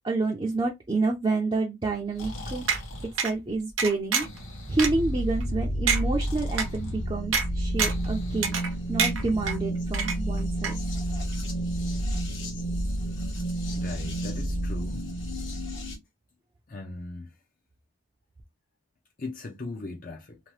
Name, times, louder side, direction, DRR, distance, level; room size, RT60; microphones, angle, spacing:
voice 1, 0.0-2.7 3.2-4.3 4.7-8.6 8.9-10.8, right 3 dB, 25° right, 0.5 m, -28 dB
Breathing, 1.9-9.3, left 1 dB, 80° left, 1.0 m, -43 dB
sound 1, 2.7-2.8 3.2-3.3 3.8-4.4 4.8-4.9 5.4-5.5 5.9-6.0 6.6-6.7 7.3-7.5 7.8-8.1 8.4-8.7 9.0-9.6 9.9-10.4 10.6-10.7, right 6 dB, 75° right, 0.8 m, -26 dB
sound 2, 4.8-16.0, right 1 dB, 65° left, 1.1 m, -30 dB
voice 2, 13.8-15.0 16.7-17.3 19.2-20.4, left 3 dB, 45° left, 0.5 m, -38 dB
2.8 x 2.1 x 3.1 m
head